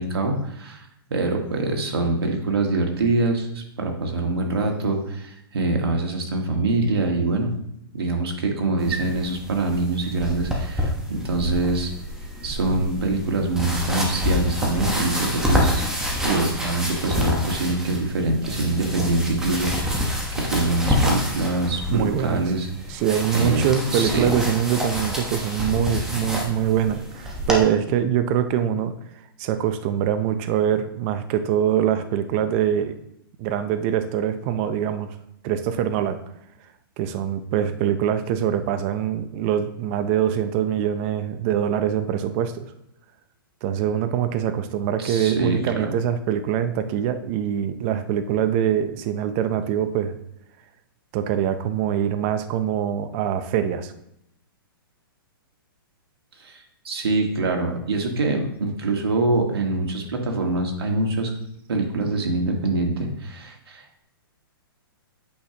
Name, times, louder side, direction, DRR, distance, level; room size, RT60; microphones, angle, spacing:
voice 1, 0.0-7.5 7.9-11.9 12.4-23.0 23.3-23.6 23.9-24.3 45.0-45.9 56.4-61.3 61.7-64.0, right 2 dB, 90° right, 2 dB, 1.7 m, -24 dB
sound 1, 8.8-27.6, left 1 dB, 5° right, 1.0 m, -27 dB
voice 2, 21.9-22.4 22.9-28.9 29.4-32.9 33.4-35.1 35.4-36.2 37.0-42.7 43.6-50.1 51.1-53.9, right 9 dB, 30° right, 9 dB, 0.5 m, -23 dB
8.5 x 6.0 x 2.9 m, 0.79 s
hypercardioid pair, 155°, 12 cm